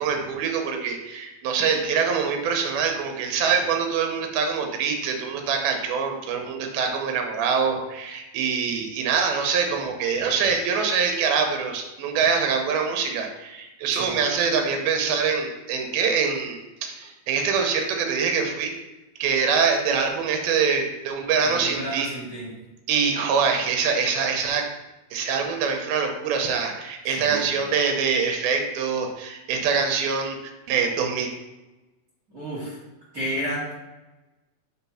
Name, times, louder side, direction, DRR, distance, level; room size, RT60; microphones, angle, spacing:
voice 1, 0.0-18.7 19.2-22.1 22.9-24.7 25.1-31.3, right 6 dB, 85° right, 3 dB, 2.7 m, -24 dB
voice 2, 21.4-22.5 27.1-27.6 32.3-32.8 33.1-33.7, equal, 30° right, -8 dB, 2.0 m, -32 dB
5.9 x 4.0 x 5.6 m, 1.1 s
omnidirectional pair, 4.3 m